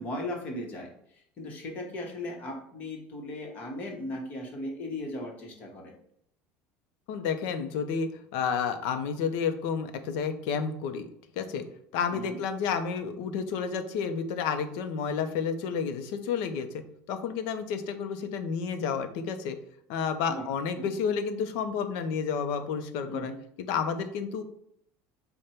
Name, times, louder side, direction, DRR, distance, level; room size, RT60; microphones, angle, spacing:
voice 1, 0.0-5.9 12.1-12.4 20.3-20.4 20.8-20.9 23.1-23.4, left 1 dB, 30° left, 1 dB, 1.0 m, -37 dB
voice 2, 7.1-11.1 11.4-11.6 11.9-16.7 17.1-19.6 19.9-23.3 23.7-24.4, left 6 dB, 60° left, 8 dB, 0.5 m, -30 dB
5.1 x 2.2 x 4.3 m, 0.70 s
cardioid pair, 175°, 5 cm